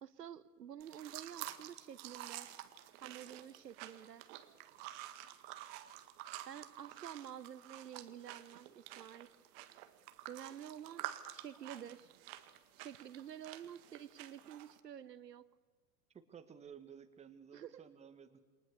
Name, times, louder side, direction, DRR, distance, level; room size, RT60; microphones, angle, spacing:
voice 1, 0.0-2.5 3.0-4.2 6.5-9.3 10.3-12.1 12.7-15.4 17.5-17.8, right 9 dB, 75° right, 17 dB, 1.0 m, -50 dB
sound 1, 0.8-14.8, right 14 dB, 40° right, 1.8 m, -50 dB
voice 2, 16.1-18.4, right 7 dB, 15° right, 8 dB, 1.7 m, -55 dB
28.5 x 24.5 x 7.1 m, 1.4 s
figure-of-eight pair, 105°, 49 cm